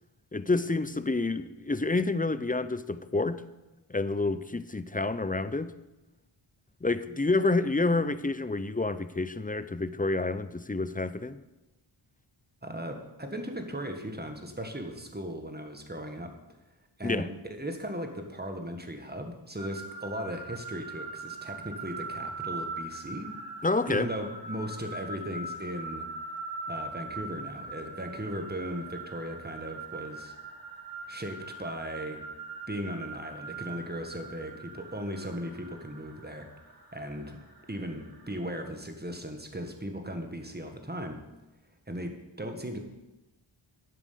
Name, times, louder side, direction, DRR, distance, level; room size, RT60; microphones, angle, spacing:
voice 1, 0.3-3.4 3.9-5.7 6.8-11.4 17.0-17.3 23.6-24.1, left 3 dB, 15° left, 14 dB, 0.5 m, -28 dB
voice 2, 12.6-16.3 17.0-23.3 23.9-26.1 26.7-30.3 31.1-32.2 32.7-36.5 36.9-37.4 37.7-41.2 41.9-42.8, equal, 20° right, 5 dB, 1.7 m, -37 dB
sound 1, 19.6-38.4, right 3 dB, 45° right, 2.0 m, -41 dB
10.0 x 7.7 x 6.8 m, 1.0 s
wide cardioid pair, 55°, 50 cm